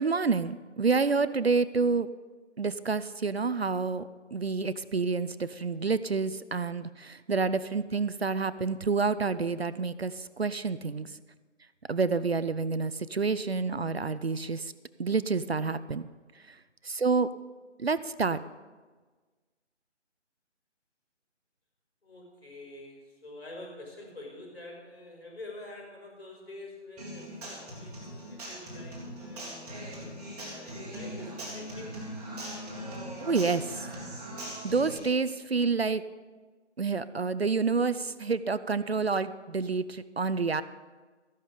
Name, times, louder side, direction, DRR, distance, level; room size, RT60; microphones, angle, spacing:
voice 1, 0.0-2.1 2.6-4.0 4.3-11.1 11.9-14.7 15.0-16.1 16.8-17.3 17.8-18.4 33.2-33.8 34.6-36.0 36.8-40.6, right 4 dB, 60° right, 14 dB, 0.6 m, -28 dB
voice 2, 22.0-29.7 30.5-32.0, left 2 dB, 55° left, 0 dB, 5.3 m, -46 dB
Human voice / Acoustic guitar, 27.0-35.0, right 1 dB, 5° right, 1.7 m, -40 dB
14.0 x 11.0 x 5.1 m, 1.4 s
figure-of-eight pair, 160°, 36 cm